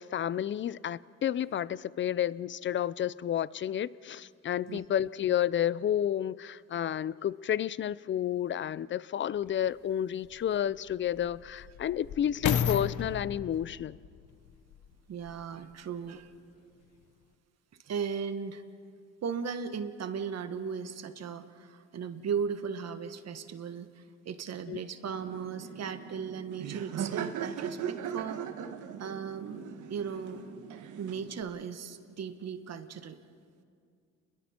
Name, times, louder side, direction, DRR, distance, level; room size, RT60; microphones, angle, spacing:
voice 1, 0.0-14.0 24.7-24.8, left 10 dB, 40° left, 0.5 m, -31 dB
sound 1, 9.4-9.5 10.2-15.5 16.2-16.3, left 9 dB, 80° left, 1.0 m, -34 dB
voice 2, 15.1-16.3 17.8-18.6 19.2-28.4 29.0-30.4 31.0-33.2, right 6 dB, 60° right, 1.4 m, -37 dB
Laughter, 25.1-31.4, right 8 dB, 80° right, 1.3 m, -39 dB
30.0 x 22.0 x 4.4 m
cardioid pair, 90°, 30 cm